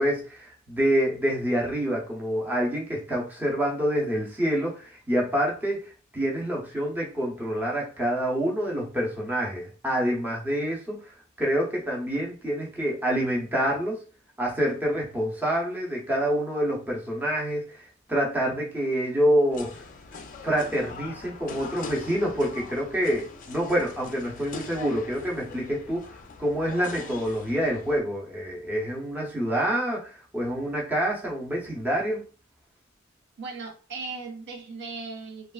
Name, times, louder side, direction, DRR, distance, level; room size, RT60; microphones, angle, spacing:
voice 1, 0.0-5.8 6.1-11.0 11.4-14.0 14.4-17.8 18.1-19.8 20.4-26.1 26.4-32.2, equal, 10° right, -3 dB, 0.7 m, -27 dB
sound 1, 19.5-28.0, left 4 dB, 40° left, 0.4 m, -42 dB
voice 2, 33.4-35.5, right 4 dB, 55° right, 3 dB, 0.4 m, -37 dB
3.1 x 2.3 x 2.3 m, 0.37 s
head